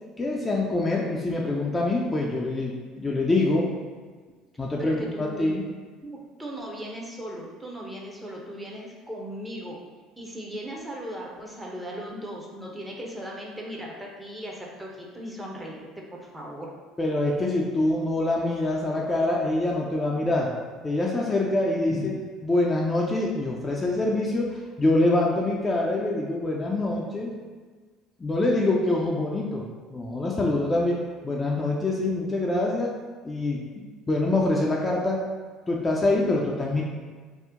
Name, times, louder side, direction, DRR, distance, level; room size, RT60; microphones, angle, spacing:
voice 1, 0.2-3.7 4.6-5.6 17.0-20.5 20.8-22.1 22.4-27.3 28.2-31.0 31.2-33.0 33.2-35.2 35.7-36.8, left 2 dB, 25° left, -2 dB, 0.4 m, -25 dB
voice 2, 4.8-5.5 6.0-9.8 10.2-16.7 21.9-22.1, equal, 15° right, -2 dB, 0.7 m, -37 dB
2.8 x 2.0 x 3.6 m, 1.5 s
hypercardioid pair, 65°, 0 cm